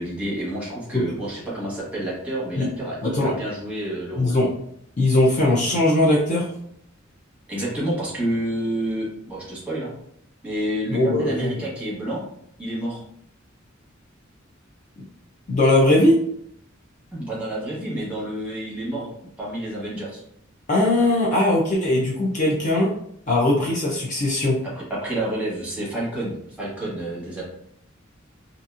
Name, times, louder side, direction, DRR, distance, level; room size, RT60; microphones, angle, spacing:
voice 1, 0.0-4.4 7.5-9.9 10.4-12.3 12.6-13.0 17.1-19.1 19.4-20.2 24.6-27.4, right 1 dB, 5° right, -6 dB, 1.0 m, -29 dB
voice 2, 3.0-3.3 4.2-4.5 5.0-6.5 10.9-11.5 15.5-16.2 20.7-22.9 23.3-24.6, left 1 dB, 40° left, -3 dB, 0.5 m, -20 dB
2.8 x 2.5 x 2.3 m, 0.71 s
head